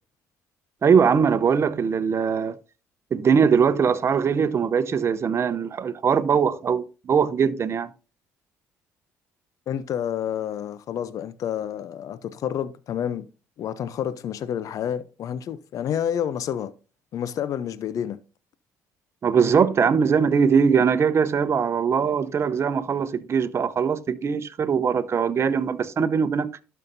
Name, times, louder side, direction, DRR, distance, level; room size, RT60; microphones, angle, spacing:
voice 1, 0.8-2.6 3.1-7.9 19.2-26.5, right 6 dB, 45° right, 0.8 m, -21 dB
voice 2, 9.7-13.3 13.6-16.7 17.1-18.2, left 9 dB, 60° left, 0.6 m, -29 dB
12.0 x 5.5 x 2.7 m
supercardioid pair, 65°, 7 cm